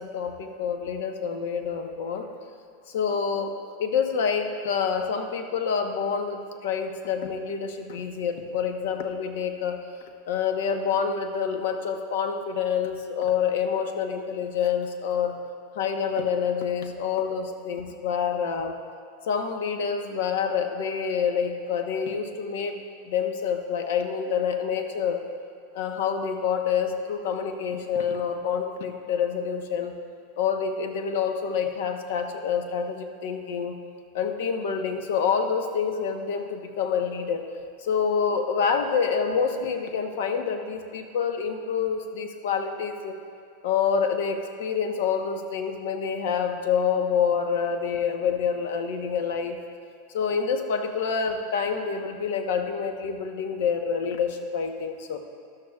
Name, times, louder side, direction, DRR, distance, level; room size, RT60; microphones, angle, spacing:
voice 1, 0.0-2.3 2.9-9.8 10.3-15.4 15.8-18.8 19.3-25.2 25.7-29.9 30.4-33.8 34.1-37.4 37.8-43.2 43.6-49.6 50.1-55.2, left 6 dB, 75° left, 6 dB, 1.0 m, -27 dB
13.5 x 12.5 x 2.4 m, 2.5 s
supercardioid pair, 135°, 0 cm